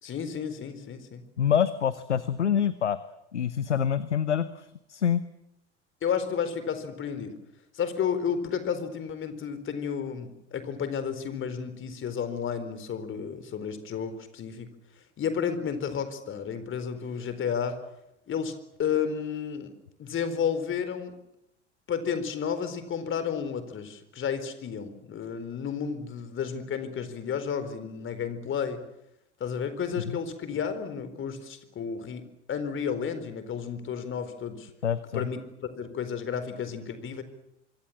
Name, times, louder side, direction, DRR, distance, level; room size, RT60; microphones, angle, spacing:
voice 1, 0.0-1.2 6.0-7.3 7.7-14.7 15.2-17.8 18.3-18.5 18.8-19.7 20.0-21.1 21.9-28.8 29.4-34.7 35.1-35.4 35.8-37.2, left 7 dB, 35° left, 11 dB, 4.2 m, -32 dB
voice 2, 1.4-3.0 3.3-5.2 30.1-30.2 34.8-35.3, left 8 dB, 80° left, 15 dB, 1.0 m, -26 dB
26.0 x 23.5 x 7.4 m, 0.85 s
figure-of-eight pair, 70°, 35 cm